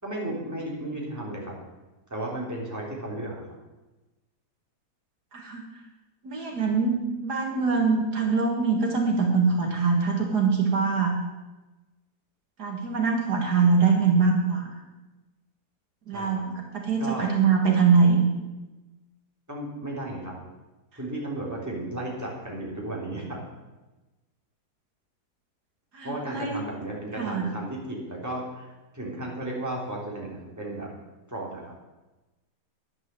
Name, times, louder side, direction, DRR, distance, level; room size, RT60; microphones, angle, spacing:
voice 1, 0.0-1.5 2.1-3.6 16.1-16.4 17.0-17.3 19.5-20.3 20.9-23.4 26.0-30.9 31.3-31.7, right 1 dB, 10° right, -4 dB, 3.3 m, -34 dB
voice 2, 5.3-5.6 6.2-11.2 12.6-14.7 16.1-18.3 25.9-26.6 27.2-27.5, right 5 dB, 70° right, 1 dB, 2.4 m, -23 dB
11.0 x 8.9 x 7.6 m, 1.1 s
omnidirectional pair, 1.8 m